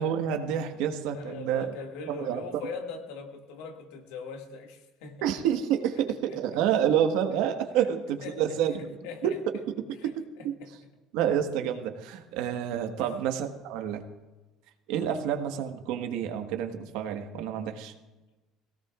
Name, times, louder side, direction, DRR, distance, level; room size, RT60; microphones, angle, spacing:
voice 1, 0.0-1.7 2.1-2.4 5.2-8.7 9.2-10.5 11.1-14.0 14.9-17.9, right 9 dB, 75° right, 5 dB, 1.5 m, -28 dB
voice 2, 1.1-5.3 6.3-6.4 8.2-8.6 9.0-9.4 10.0-10.1 10.6-10.7 13.0-13.1, left 4 dB, 85° left, 3 dB, 2.1 m, -41 dB
21.5 x 17.0 x 2.5 m, 1.2 s
cardioid pair, 165°, 0 cm